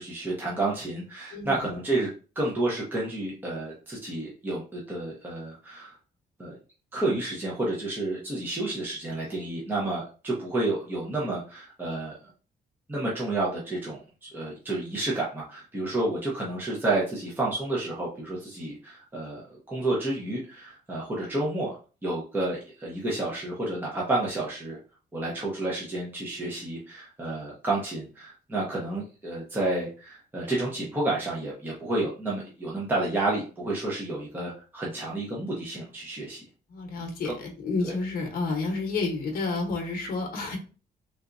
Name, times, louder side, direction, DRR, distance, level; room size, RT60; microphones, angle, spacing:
voice 1, 0.0-2.1 2.4-6.0 6.4-6.5 6.9-12.3 12.9-21.7 22.0-24.8 25.1-36.4 36.9-37.3 37.8-37.9, right 2 dB, 10° right, -5 dB, 0.7 m, -30 dB
voice 2, 36.7-40.6, left 3 dB, 60° left, 2 dB, 0.9 m, -30 dB
3.4 x 2.8 x 2.5 m, 0.35 s
cardioid pair, 175°, 17 cm